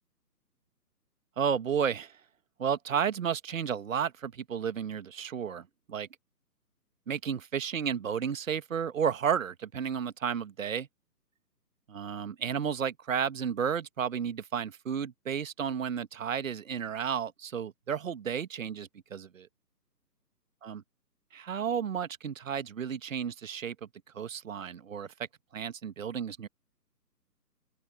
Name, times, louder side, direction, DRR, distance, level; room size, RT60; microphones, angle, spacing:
voice 1, 1.4-2.2 2.6-6.1 7.1-10.9 11.9-19.5 20.6-20.8 21.3-23.7 24.1-25.1 25.5-26.5, right 7 dB, 50° right, 1.5 m, -32 dB
open air
figure-of-eight pair, 150°, 49 cm